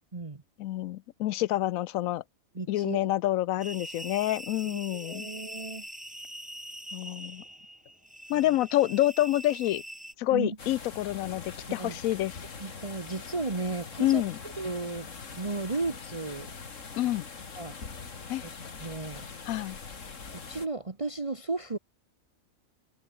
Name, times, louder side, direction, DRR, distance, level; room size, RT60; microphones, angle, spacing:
voice 1, 0.6-2.2 2.7-5.3 6.9-7.4 8.3-9.8 10.2-12.4 14.0-14.4 17.0-17.3 18.3-18.4 19.4-19.8, left 14 dB, 85° left, 1.0 m, -28 dB
voice 2, 2.5-3.1 4.6-5.8 10.3-10.6 11.8-12.0 12.6-14.2 14.6-15.1 15.3-16.5 17.6-17.8 18.4-18.5 18.8-19.3 20.5-21.8, right 3 dB, 25° right, 1.3 m, -34 dB
sound 1, 3.6-10.1, right 1 dB, 5° right, 1.4 m, -43 dB
sound 2, 10.6-20.7, left 5 dB, 65° left, 2.5 m, -43 dB
omnidirectional pair, 1.4 m